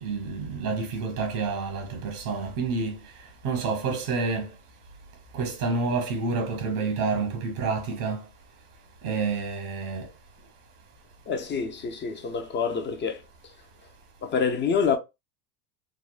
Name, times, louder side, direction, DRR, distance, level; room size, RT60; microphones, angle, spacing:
voice 1, 0.0-3.0 3.4-4.5 5.3-8.2 9.0-10.1, right 4 dB, 85° right, 1.3 m, -28 dB
voice 2, 11.3-13.2 14.2-15.0, left 6 dB, 25° left, 0.4 m, -27 dB
3.5 x 2.1 x 2.3 m
supercardioid pair, 105°, 44 cm